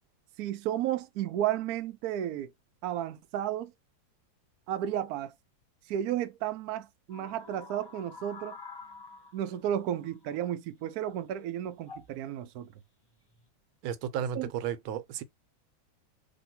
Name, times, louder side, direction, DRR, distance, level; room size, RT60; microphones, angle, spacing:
voice 1, 0.4-2.5 2.8-3.7 4.7-5.3 5.9-8.6 9.3-12.8 14.4-14.5, right 11 dB, 70° right, 0.9 m, -33 dB
sound 1, 7.1-10.9 11.8-12.2 13.1-13.4, left 4 dB, 30° left, 0.4 m, -49 dB
voice 2, 13.8-15.2, right 8 dB, 90° right, 1.5 m, -33 dB
3.0 x 2.8 x 4.1 m
omnidirectional pair, 2.1 m